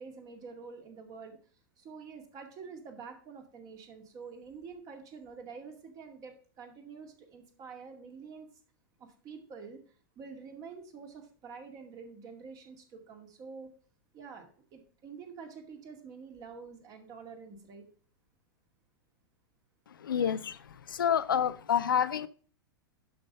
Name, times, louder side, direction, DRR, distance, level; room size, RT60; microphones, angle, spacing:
voice 1, 0.0-1.4 1.8-8.5 9.0-13.7 14.1-17.9 20.2-20.3, right 5 dB, 30° right, 2.2 m, -47 dB
voice 2, 20.0-20.6 20.9-22.3, left 8 dB, 65° left, 0.6 m, -28 dB
11.5 x 5.3 x 5.4 m
figure-of-eight pair, 95°, 12 cm